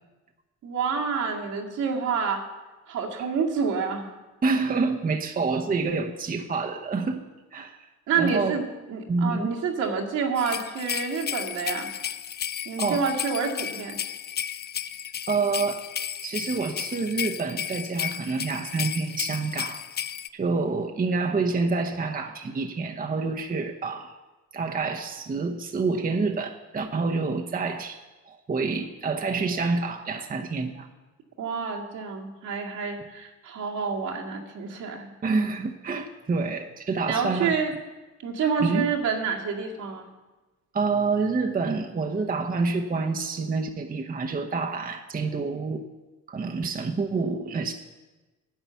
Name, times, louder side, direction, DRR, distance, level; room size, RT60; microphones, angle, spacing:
voice 1, 0.6-2.4 2.9-4.1 8.1-11.9 12.7-14.0 31.4-35.1 37.1-37.7 38.2-40.1, right 5 dB, 80° right, -2 dB, 2.1 m, -28 dB
voice 2, 4.4-7.2 7.5-7.9 8.2-8.5 9.1-9.5 12.8-13.0 15.3-15.8 16.2-19.8 20.3-24.1 24.5-28.0 28.3-30.9 35.2-37.5 38.6-38.9 40.7-45.8 46.3-47.7, right 4 dB, 30° right, 4 dB, 0.9 m, -27 dB
sound 1, 10.4-20.3, left 9 dB, 35° left, 0.4 m, -33 dB
10.5 x 8.6 x 7.0 m, 1.2 s
cardioid pair, 90°, 30 cm